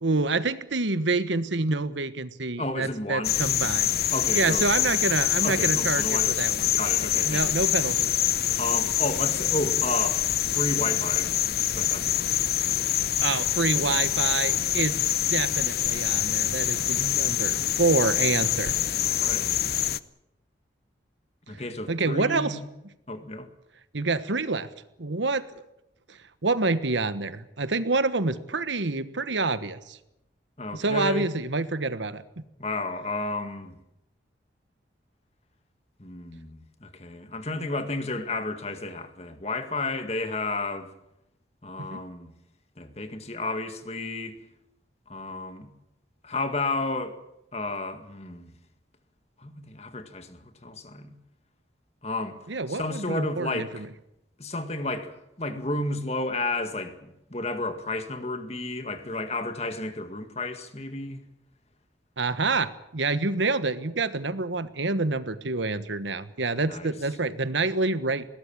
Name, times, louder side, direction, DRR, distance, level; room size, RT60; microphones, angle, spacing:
voice 1, 0.0-3.9 4.3-6.7 7.3-8.1 13.2-18.7 21.9-22.6 23.9-24.7 25.0-25.5 26.1-30.0 30.7-32.2 41.9-42.0 52.5-53.9 62.2-68.3, right 3 dB, 80° right, 1.3 m, -27 dB
voice 2, 2.6-3.4 4.1-4.7 5.4-6.4 6.7-7.6 8.6-10.3 10.5-11.4 11.7-12.4 19.0-19.5 21.5-22.7 23.1-23.5 30.6-31.3 32.6-33.8 36.0-40.9 41.6-42.3 42.8-44.4 45.1-45.7 46.2-47.2 47.5-48.5 49.4-51.1 52.0-52.4 52.7-53.9 54.4-61.2 66.7-66.9, left 2 dB, 35° left, 1.9 m, -32 dB
sound 1, 3.2-20.0, left 11 dB, 55° left, 0.7 m, -25 dB
21.0 x 18.0 x 8.7 m
head